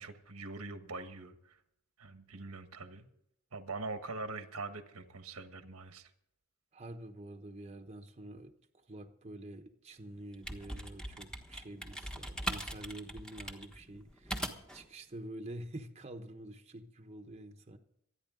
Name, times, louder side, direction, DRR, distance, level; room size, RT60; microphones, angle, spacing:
voice 1, 0.0-1.6 2.0-3.1 3.5-6.1, right 3 dB, 85° right, 1.4 m, -43 dB
voice 2, 6.7-17.8, right 1 dB, 30° right, 1.0 m, -47 dB
sound 1, 10.2-14.8, equal, 5° left, 1.3 m, -41 dB
26.0 x 10.0 x 3.8 m
head